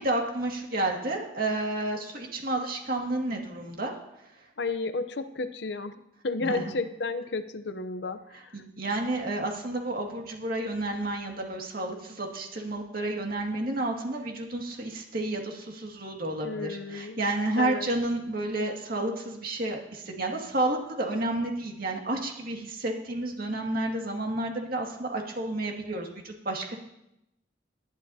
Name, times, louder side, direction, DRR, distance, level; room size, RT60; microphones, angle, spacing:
voice 1, 0.0-3.9 6.4-6.7 8.5-26.8, right 2 dB, 50° right, 1 dB, 2.1 m, -31 dB
voice 2, 4.6-8.6 16.4-17.2 17.6-17.9, left 3 dB, 65° left, 11 dB, 0.7 m, -32 dB
18.5 x 12.0 x 2.8 m, 0.84 s
head